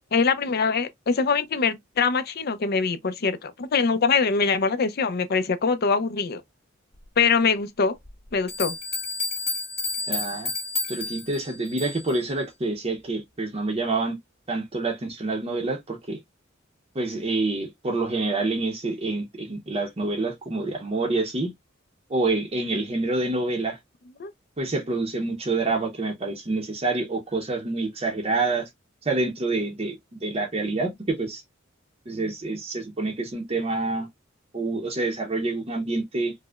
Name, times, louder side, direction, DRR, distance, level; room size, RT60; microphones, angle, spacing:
voice 1, 0.1-6.4 7.2-8.0 8.3-8.8 24.2-24.3, left 5 dB, 50° left, 0.5 m, -23 dB
sound 1, 8.1-8.2 8.5-12.2, left 3 dB, 30° left, 1.9 m, -31 dB
voice 2, 10.1-10.5 10.9-14.2 14.5-16.2 16.9-21.5 22.1-23.8 24.6-28.7 29.0-31.4 32.1-34.1 34.5-36.3, right 3 dB, 30° right, 0.7 m, -27 dB
4.9 x 2.1 x 2.2 m
head